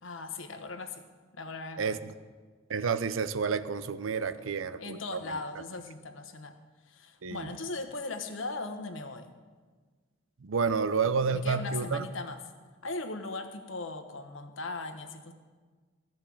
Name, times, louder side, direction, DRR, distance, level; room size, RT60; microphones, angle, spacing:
voice 1, 0.0-1.0 1.3-2.0 4.4-4.5 4.8-6.6 6.9-9.3 11.3-12.4 12.8-15.3, left 3 dB, 75° left, 7 dB, 1.1 m, -38 dB
voice 2, 1.8-2.1 2.7-5.0 5.3-5.4 7.2-7.5 10.4-12.0, right 5 dB, 85° right, 13 dB, 0.6 m, -30 dB
15.0 x 5.4 x 8.5 m, 1.5 s
head